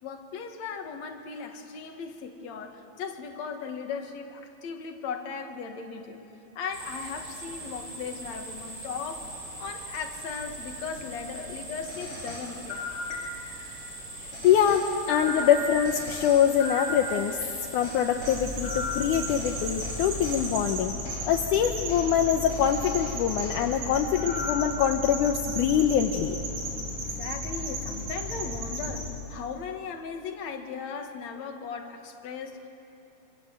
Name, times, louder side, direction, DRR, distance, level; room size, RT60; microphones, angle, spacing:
voice 1, 0.0-6.2 6.6-9.3 9.6-12.9 14.8-14.9 27.0-32.7, left 5 dB, 60° left, 4 dB, 2.8 m, -37 dB
sound 1, 6.7-20.7, right 2 dB, 45° right, 8.2 m, -41 dB
sound 2, 11.9-13.6 14.3-17.5 17.8-20.4 21.0-21.2 21.9-22.1 22.5-23.6 24.2-24.8, left 2 dB, 30° left, 5.9 m, -37 dB
voice 2, 14.2-17.4 17.7-20.9 21.3-26.4, left 9 dB, 80° left, 4 dB, 2.4 m, -24 dB
sound 3, 18.2-29.1, equal, 70° right, 5.7 m, -34 dB
26.5 x 26.5 x 8.0 m, 2.8 s
omnidirectional pair, 3.6 m